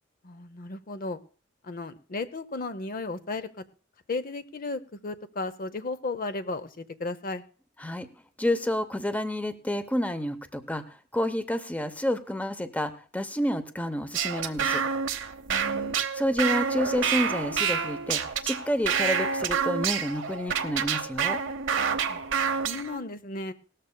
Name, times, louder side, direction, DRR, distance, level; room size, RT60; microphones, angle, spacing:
voice 1, 0.2-1.2 1.6-3.6 4.1-7.4 15.5-16.0 22.1-22.2 22.6-23.5, left 3 dB, 45° left, 11 dB, 0.7 m, -34 dB
voice 2, 8.4-14.8 16.1-21.4, left 1 dB, 10° left, 10 dB, 0.8 m, -29 dB
sound 1, 14.1-23.0, right 6 dB, 80° right, 0.9 m, -28 dB
18.5 x 13.5 x 2.3 m, 0.39 s
head